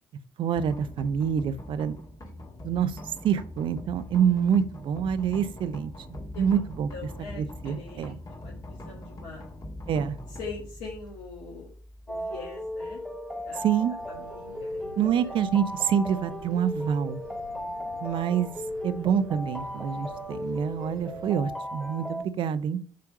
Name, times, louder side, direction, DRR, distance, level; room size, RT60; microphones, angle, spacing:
voice 1, 0.4-2.0 2.6-3.0 3.2-5.9 6.4-6.9 7.3-8.2 9.9-10.2 13.5-14.0 15.0-17.2 18.0-18.5 18.8-22.8, right 8 dB, 55° right, 14 dB, 0.7 m, -26 dB
sound 1, 0.5-14.4, left 1 dB, 35° left, 1.8 m, -43 dB
voice 2, 6.9-9.4 9.9-10.0 10.4-11.7 12.1-13.0 13.4-13.7 14.2-14.9 15.2-15.3 17.5-18.0, left 4 dB, 70° left, -4 dB, 1.7 m, -43 dB
sound 2, 12.1-22.2, left 1 dB, 5° left, 1.8 m, -36 dB
sound 3, 14.0-21.3, right 2 dB, 85° right, 1.0 m, -50 dB
7.6 x 3.5 x 5.9 m, 0.43 s
figure-of-eight pair, 50°, 10 cm